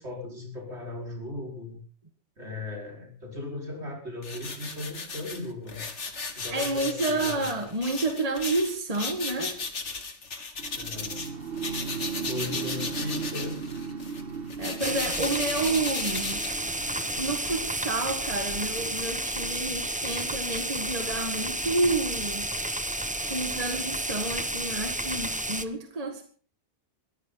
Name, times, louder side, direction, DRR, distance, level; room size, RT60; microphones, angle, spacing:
voice 1, 0.0-1.8 2.4-5.9 6.4-7.5 10.8-11.2 12.1-13.6, left 2 dB, 70° right, 1 dB, 5.6 m, -37 dB
sound 1, 4.2-11.3 11.6-17.0, left 4 dB, 90° left, 2.3 m, -36 dB
voice 2, 6.5-9.6 14.6-16.5 17.2-22.5 23.2-26.2, right 2 dB, 35° right, 5 dB, 1.9 m, -30 dB
sound 2, 10.6-20.6, right 5 dB, 55° right, 1.7 m, -38 dB
sound 3, 14.8-25.7, right 1 dB, 10° right, 0.8 m, -31 dB
21.5 x 14.5 x 4.0 m, 0.40 s
omnidirectional pair, 1.2 m